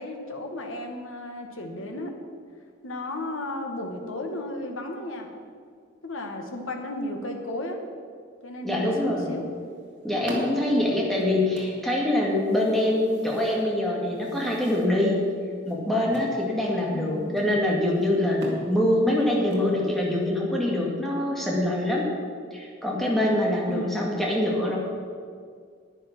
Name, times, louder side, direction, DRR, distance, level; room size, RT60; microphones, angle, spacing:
voice 1, 0.0-2.1 2.8-5.3 6.0-7.8 8.4-9.4 16.9-17.2 23.6-24.0, left 1 dB, 85° left, 3 dB, 1.5 m, -34 dB
voice 2, 8.6-9.3 10.0-15.3 15.7-22.1 22.5-24.8, left 1 dB, ahead, -3 dB, 1.9 m, -24 dB
sound 1, 9.4-20.3, equal, 60° right, 2.2 m, -43 dB
10.0 x 9.9 x 5.9 m, 2.1 s
head